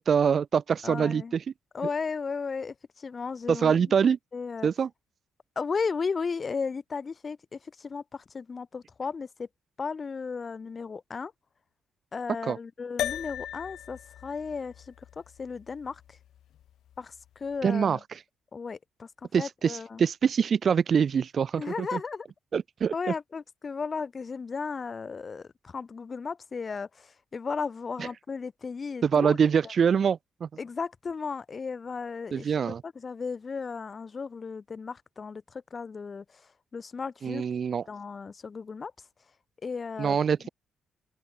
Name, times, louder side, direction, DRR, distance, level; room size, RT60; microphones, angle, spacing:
voice 1, 0.0-1.4 3.5-4.2 4.6-4.9 12.5-12.6 17.6-18.2 19.3-22.0 22.5-22.9 29.0-30.5 32.3-32.8 37.2-37.8 40.0-40.5, right 7 dB, 50° right, 0.6 m, -24 dB
voice 2, 0.8-1.3 1.7-3.9 4.3-4.7 5.6-9.5 9.8-11.3 12.1-16.2 17.0-17.9 18.5-19.1 19.4-20.0 21.6-22.3 22.9-29.4 30.6-37.4 37.9-38.9 39.6-40.2, left 5 dB, 35° left, 2.4 m, -35 dB
sound 1, 13.0-17.6, left 11 dB, 75° left, 2.2 m, -39 dB
open air
cardioid pair, 90°, 0 cm